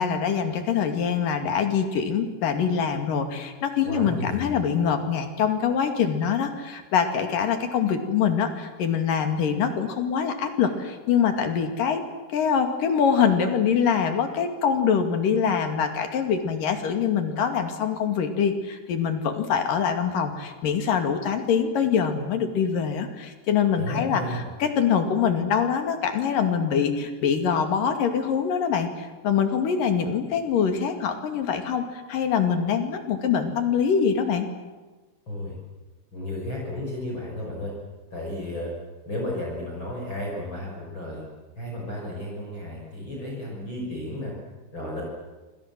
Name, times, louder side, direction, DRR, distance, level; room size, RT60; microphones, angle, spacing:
voice 1, 0.0-12.0 12.3-34.5, left 7 dB, 60° left, 6 dB, 3.8 m, -24 dB
voice 2, 3.8-4.7 23.8-24.4 35.3-35.6 36.1-37.7 38.1-38.7 39.0-41.2 41.6-44.3 44.7-45.0, left 1 dB, 30° left, -2 dB, 6.8 m, -33 dB
28.0 x 26.0 x 7.6 m, 1.2 s
omnidirectional pair, 4.7 m